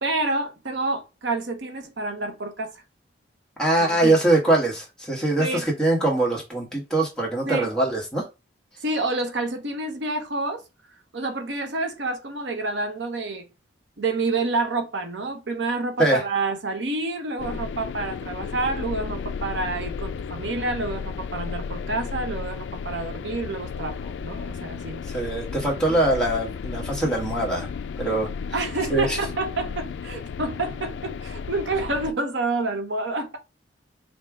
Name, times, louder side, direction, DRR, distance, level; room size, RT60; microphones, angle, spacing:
voice 1, 0.0-2.8 3.8-4.2 5.4-5.6 7.5-7.7 8.8-10.6 11.1-13.5 14.0-25.0 28.5-33.4, right 3 dB, 80° right, 0.8 m, -28 dB
voice 2, 3.6-8.3 16.0-16.2 25.1-27.7 28.0-28.3 28.9-29.2, right 2 dB, 5° left, 1.2 m, -22 dB
sound 1, 17.4-32.1, left 6 dB, 75° left, 0.3 m, -33 dB
5.3 x 2.2 x 3.5 m
head